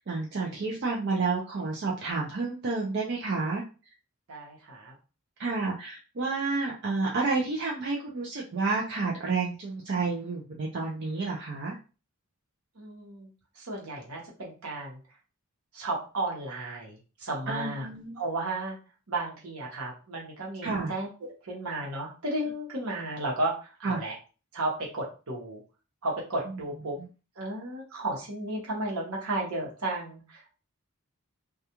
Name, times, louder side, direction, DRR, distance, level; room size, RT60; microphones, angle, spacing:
voice 1, 0.0-3.6 5.4-11.8 17.5-18.2 20.6-20.9 23.8-24.0 27.0-27.1, right 3 dB, 50° right, -2 dB, 0.4 m, -30 dB
voice 2, 4.3-4.9 12.8-13.3 13.6-15.0 15.7-17.9 18.2-18.7 19.1-24.1 24.5-25.6 26.0-26.9 27.4-30.5, right 2 dB, 75° right, -2 dB, 1.0 m, -33 dB
2.3 x 2.3 x 2.8 m, 0.33 s
head